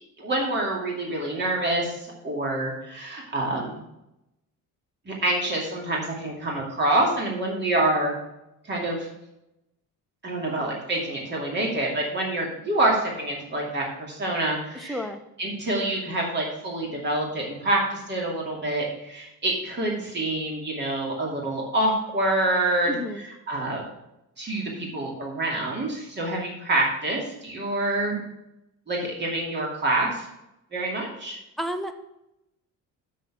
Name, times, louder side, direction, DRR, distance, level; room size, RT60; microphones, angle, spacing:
voice 1, 0.2-3.8 5.1-8.1 8.7-9.1 10.2-15.0 15.4-22.9 23.5-23.8 24.4-28.2 28.9-30.3 30.7-31.4, right 2 dB, 30° right, -1 dB, 2.5 m, -26 dB
voice 2, 14.7-15.2 22.9-23.2 31.6-31.9, equal, ahead, 7 dB, 0.7 m, -31 dB
7.2 x 6.6 x 6.2 m, 0.88 s
cardioid pair, 155°, 35 cm